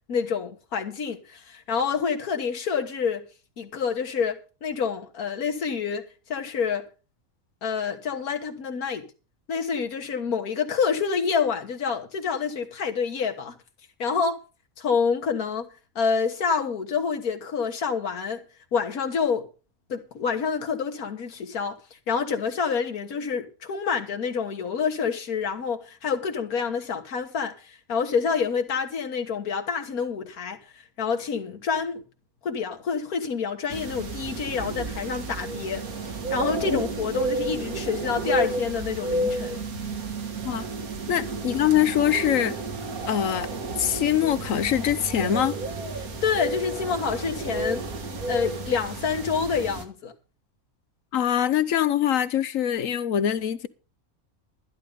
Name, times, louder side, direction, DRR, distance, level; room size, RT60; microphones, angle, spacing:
voice 1, 0.1-3.3 3.6-6.9 7.6-9.0 9.5-13.6 14.0-14.4 14.8-15.7 16.0-18.4 18.7-19.5 19.9-32.0 32.4-39.6 46.2-47.9 48.3-50.1, left 6 dB, 90° left, 1.8 m, -27 dB
sound 1, 33.7-49.8, right 2 dB, 85° right, 2.0 m, -31 dB
voice 2, 41.1-42.5 43.1-43.5 43.8-45.6 51.1-53.7, left 10 dB, 70° left, 1.1 m, -23 dB
12.0 x 11.0 x 5.1 m
omnidirectional pair, 1.5 m